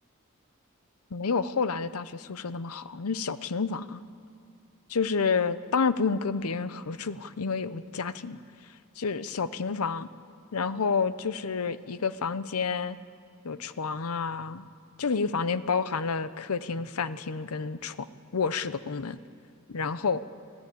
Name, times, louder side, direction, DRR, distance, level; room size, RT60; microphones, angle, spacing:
voice 1, 1.1-4.0 4.9-8.4 9.0-10.1 10.5-13.0 13.4-14.6 15.0-18.1 18.3-19.2 19.7-20.2, left 5 dB, 90° left, 14 dB, 0.7 m, -29 dB
25.5 x 15.0 x 8.5 m, 2.4 s
head